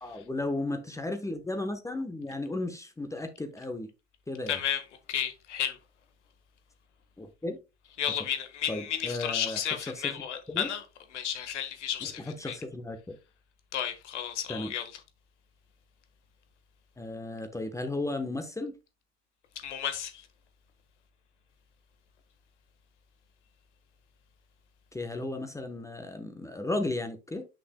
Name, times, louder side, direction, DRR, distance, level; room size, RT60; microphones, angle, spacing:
voice 1, 0.0-3.9 4.3-4.6 7.2-7.6 8.7-10.1 10.5-10.7 12.0-13.2 14.5-14.7 17.0-18.7 24.9-27.5, left 2 dB, 10° left, 1.0 m, -34 dB
voice 2, 4.5-4.8 5.1-5.8 8.0-10.8 11.1-12.6 13.7-14.8 19.6-20.2, left 9 dB, 90° left, 1.5 m, -32 dB
7.9 x 6.0 x 2.2 m
hypercardioid pair, 95°, 34 cm